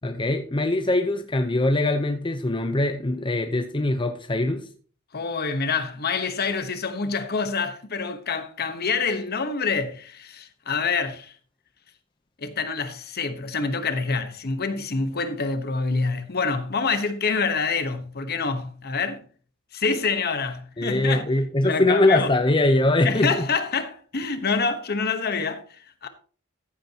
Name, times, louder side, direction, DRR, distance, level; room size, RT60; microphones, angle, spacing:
voice 1, 0.0-4.7 20.8-23.5, left 2 dB, 25° left, 0.8 m, -22 dB
voice 2, 5.1-11.3 12.4-19.2 19.7-21.3 21.6-22.3 23.0-26.1, left 4 dB, 50° left, 1.2 m, -26 dB
14.5 x 8.7 x 2.9 m
head